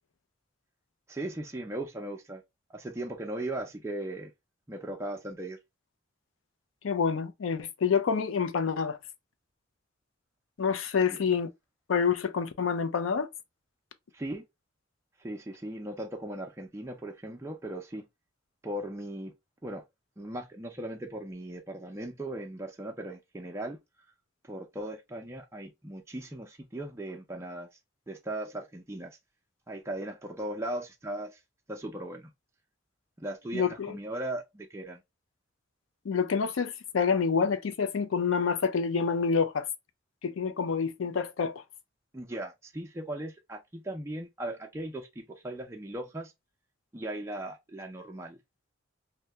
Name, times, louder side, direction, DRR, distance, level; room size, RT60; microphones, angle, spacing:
voice 1, 1.1-2.4 2.7-4.3 4.7-5.6 14.1-14.4 15.2-18.1 18.6-19.3 19.6-19.8 20.2-23.8 24.5-27.7 28.1-29.2 29.7-31.4 31.7-32.3 33.2-35.0 42.1-46.3 46.9-48.4, right 1 dB, 15° right, 0.4 m, -38 dB
voice 2, 6.8-9.0 10.6-11.5 11.9-13.3 33.5-34.0 36.0-39.7 40.2-41.6, left 6 dB, 90° left, 0.4 m, -27 dB
2.7 x 2.1 x 3.3 m
head